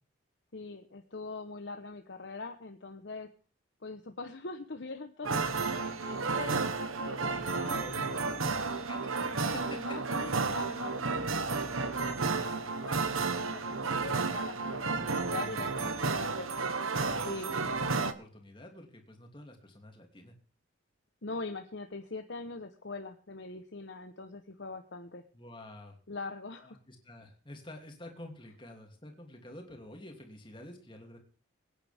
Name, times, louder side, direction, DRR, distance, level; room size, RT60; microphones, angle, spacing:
voice 1, 0.5-3.3 3.8-5.7 6.0-7.7 9.8-16.5 17.2-17.5 21.2-25.2 26.1-26.8, left 3 dB, 60° left, 6 dB, 1.0 m, -43 dB
sound 1, 5.2-18.1, right 4 dB, 90° right, 1.2 m, -32 dB
voice 2, 7.3-10.2 10.8-10.9 15.0-15.9 17.4-20.3 25.3-26.0 26.6-31.2, left 1 dB, 25° left, 3 dB, 2.8 m, -48 dB
23.5 x 9.9 x 3.6 m, 0.38 s
head